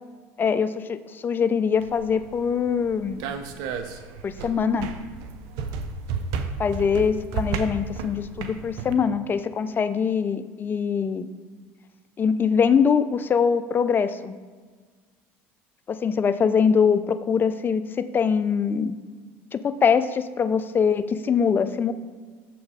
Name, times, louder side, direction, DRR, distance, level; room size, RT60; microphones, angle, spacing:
voice 1, 0.4-3.3 4.2-4.9 6.6-11.3 12.2-14.4 15.9-18.9 19.5-21.9, left 6 dB, 30° left, 12 dB, 0.5 m, -23 dB
sound 1, 1.8-8.9, right 5 dB, 75° right, 0.7 m, -33 dB
7.1 x 6.0 x 4.9 m, 1.5 s
supercardioid pair, 90°, 7 cm